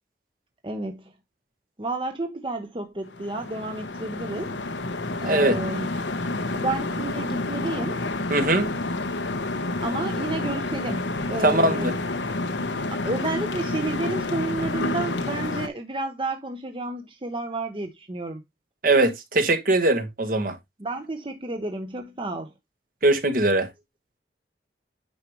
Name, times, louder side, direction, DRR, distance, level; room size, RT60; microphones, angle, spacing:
voice 1, 0.6-1.1 1.8-4.6 5.2-5.9 6.5-8.0 9.8-12.0 12.9-18.4 20.8-22.5, right 2 dB, 30° right, 0.8 m, -31 dB
sound 1, 3.0-15.7, left 2 dB, 90° left, 1.1 m, -29 dB
voice 2, 5.3-5.6 8.3-8.7 11.4-11.9 18.8-20.6 23.0-23.7, right 2 dB, 50° right, 1.3 m, -21 dB
9.5 x 4.9 x 3.1 m
head